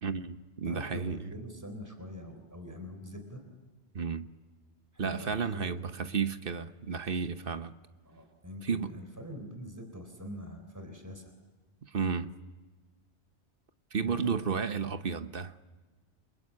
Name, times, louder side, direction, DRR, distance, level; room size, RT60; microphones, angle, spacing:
voice 1, 0.0-1.2 3.9-4.3 5.0-7.7 8.6-8.9 11.8-12.3 13.9-15.5, right 5 dB, 55° right, 1.2 m, -32 dB
voice 2, 0.6-3.4 4.9-6.1 8.1-11.3 14.0-14.5, left 1 dB, 15° right, 3.7 m, -44 dB
29.5 x 22.0 x 8.5 m
omnidirectional pair, 1.2 m